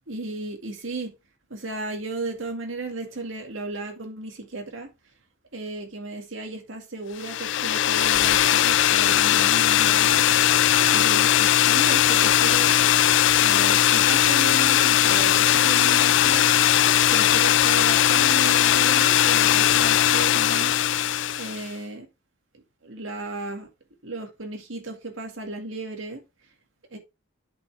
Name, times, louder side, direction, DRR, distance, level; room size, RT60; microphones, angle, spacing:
voice 1, 0.1-1.1 1.5-4.9 5.5-10.3 10.9-12.8 13.4-16.5 17.1-20.7 21.4-22.1 22.5-23.7 24.0-26.2 26.9-27.0, right 2 dB, 80° right, 2.1 m, -34 dB
sound 1, 7.2-21.7, left 11 dB, 65° left, 0.4 m, -19 dB
8.3 x 5.7 x 3.3 m
head